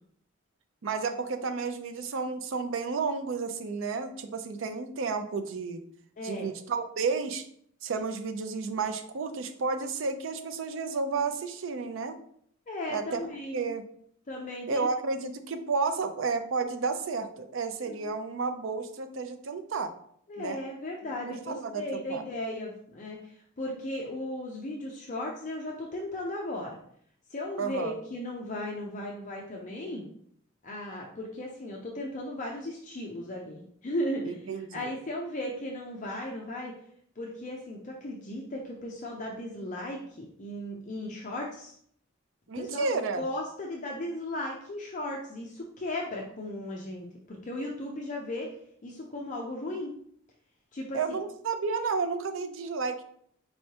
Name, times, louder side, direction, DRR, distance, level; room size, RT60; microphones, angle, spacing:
voice 1, 0.8-5.8 6.2-7.4 7.8-12.2 12.9-13.8 14.7-19.9 20.4-20.6 21.3-22.2 27.6-27.9 34.2-34.9 42.5-43.2 50.9-53.0, right 4 dB, 65° right, 8 dB, 0.5 m, -32 dB
voice 2, 6.2-6.5 12.7-13.7 14.3-14.9 17.9-18.1 20.3-26.8 27.3-30.1 30.6-36.7 37.2-41.7 42.6-48.5 48.8-49.9 50.7-51.0, left 1 dB, 40° left, -1 dB, 0.5 m, -36 dB
4.5 x 3.2 x 2.8 m, 0.65 s
head